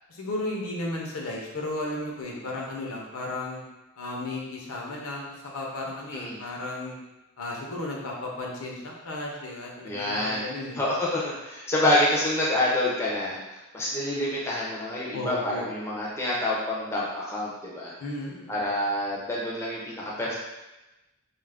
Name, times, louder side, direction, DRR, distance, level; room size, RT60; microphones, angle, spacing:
voice 1, 0.1-3.6 4.0-7.0 7.4-10.8 15.1-15.7 18.0-18.5, left 2 dB, 80° left, -2 dB, 0.6 m, -34 dB
voice 2, 9.8-10.4 10.7-17.9 18.5-20.3, left 1 dB, 10° left, -6 dB, 0.4 m, -27 dB
2.3 x 2.1 x 3.3 m, 1.0 s
head